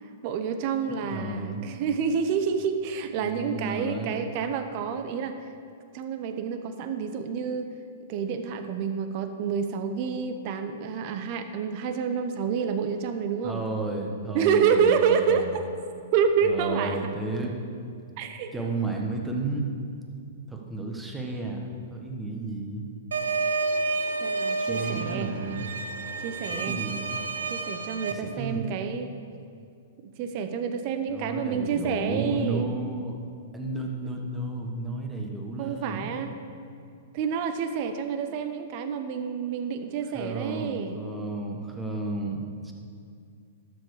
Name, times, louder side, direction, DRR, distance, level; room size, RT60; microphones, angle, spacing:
voice 1, 0.2-5.3 5.9-7.7 8.1-13.6 14.3-15.5 16.1-17.0 18.2-18.5 24.2-25.3 26.2-26.8 27.5-29.1 30.0-32.7 34.0-34.1 35.6-36.4 37.1-41.0, right 6 dB, 45° right, 8 dB, 0.9 m, -28 dB
voice 2, 1.1-1.6 3.2-4.1 13.4-15.5 16.4-17.6 18.5-19.6 20.5-22.9 24.6-25.7 26.5-27.0 28.1-28.7 31.1-33.2 33.5-36.1 40.1-42.7, right 2 dB, 10° right, 0 dB, 1.5 m, -32 dB
sound 1, 23.1-28.1, right 4 dB, 75° right, 0.8 m, -30 dB
12.5 x 7.1 x 4.9 m, 2.3 s
hypercardioid pair, 110°, 0 cm